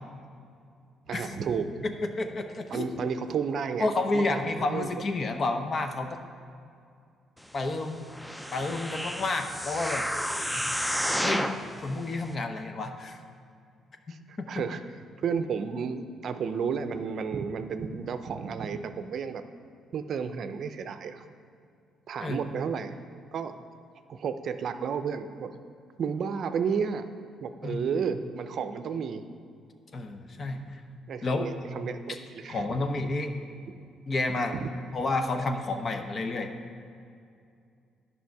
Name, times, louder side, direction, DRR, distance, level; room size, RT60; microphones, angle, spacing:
voice 1, 1.1-1.8 2.7-3.9 4.1-4.9 14.1-14.8 15.2-19.4 19.9-21.3 22.1-23.0 23.3-23.5 24.1-25.5 26.0-27.0 27.4-29.2 31.1-32.8 34.6-34.7, right 6 dB, 60° right, 9 dB, 0.5 m, -32 dB
voice 2, 1.8-2.8 3.8-6.2 7.5-8.0 8.5-10.1 11.2-11.5 11.8-13.2 14.4-14.5 22.2-22.4 27.6-27.9 29.9-30.8 31.2-31.5 32.5-33.3 34.1-34.6 34.9-36.5, left 2 dB, 40° left, 6 dB, 0.8 m, -30 dB
sound 1, 8.1-11.6 12.2-12.3, equal, 5° left, 0.5 m, -31 dB
10.5 x 5.6 x 4.6 m, 2.4 s
cardioid pair, 80°, 0 cm